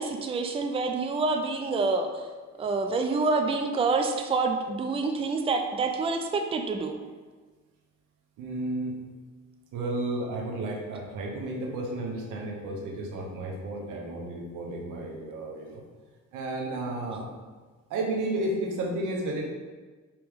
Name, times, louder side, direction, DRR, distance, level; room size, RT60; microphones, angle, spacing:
voice 1, 0.0-2.2 2.6-7.0, right 3 dB, 20° right, 5 dB, 0.4 m, -27 dB
voice 2, 8.4-9.0 9.7-15.8 16.3-17.3 17.9-19.4, right 2 dB, 90° right, 0 dB, 0.9 m, -32 dB
4.9 x 3.0 x 3.5 m, 1.4 s
cardioid pair, 90°, 30 cm